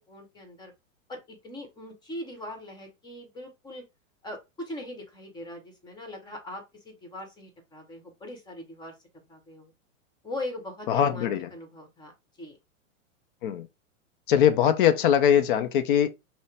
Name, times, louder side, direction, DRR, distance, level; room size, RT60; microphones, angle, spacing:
voice 1, 0.1-0.7 1.1-3.8 4.2-8.9 9.3-9.7 10.2-12.1 12.4-12.6, left 1 dB, 10° left, 1.2 m, -40 dB
voice 2, 10.9-11.5 13.4-13.7 14.3-16.1, left 9 dB, 40° left, 0.6 m, -21 dB
5.6 x 2.2 x 3.3 m
hypercardioid pair, 145°, 41 cm